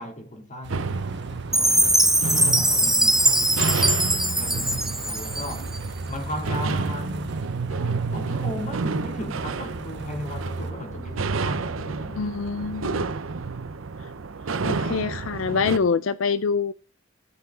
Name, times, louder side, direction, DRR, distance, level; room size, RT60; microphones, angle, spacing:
voice 1, 0.0-1.8 2.3-3.9 4.4-5.7 6.1-12.4, left 1 dB, 40° left, 2.7 m, -36 dB
sound 1, 0.6-10.7, right 2 dB, 60° right, 1.3 m, -40 dB
sound 2, 0.7-15.8, right 4 dB, 85° right, 0.7 m, -30 dB
Chime, 1.5-5.8, right 1 dB, ahead, 0.7 m, -21 dB
voice 2, 12.2-13.1 14.6-16.7, left 5 dB, 75° left, 0.5 m, -25 dB
17.5 x 5.9 x 3.7 m
head